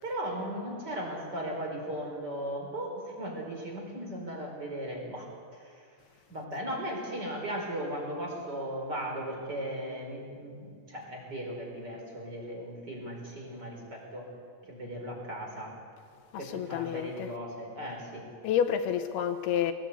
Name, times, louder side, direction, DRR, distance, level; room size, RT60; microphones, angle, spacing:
voice 1, 0.0-5.3 6.3-14.3 14.7-15.7 16.4-18.3, right 1 dB, 25° right, 4.7 m, -37 dB
voice 2, 16.3-17.4 18.4-19.7, left 9 dB, 75° left, 2.6 m, -29 dB
21.5 x 19.5 x 8.4 m
omnidirectional pair, 5.1 m